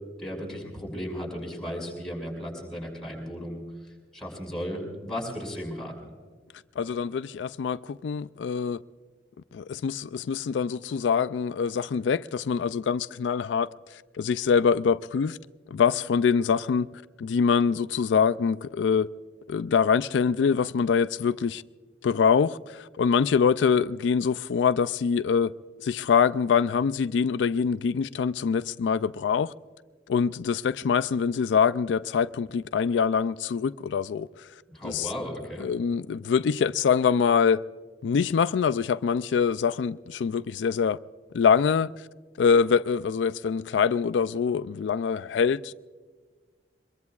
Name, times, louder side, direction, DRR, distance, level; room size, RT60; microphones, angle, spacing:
voice 1, 0.2-5.9 34.7-35.7, equal, 5° left, 5.6 m, -35 dB
voice 2, 6.8-8.8 9.5-15.4 15.7-19.1 19.5-21.6 22.0-25.5 25.8-29.5 30.1-34.5 34.8-35.1 35.6-37.6 38.0-41.0 41.3-42.1 42.4-45.7, left 6 dB, 85° left, 0.4 m, -24 dB
24.0 x 22.0 x 2.4 m
head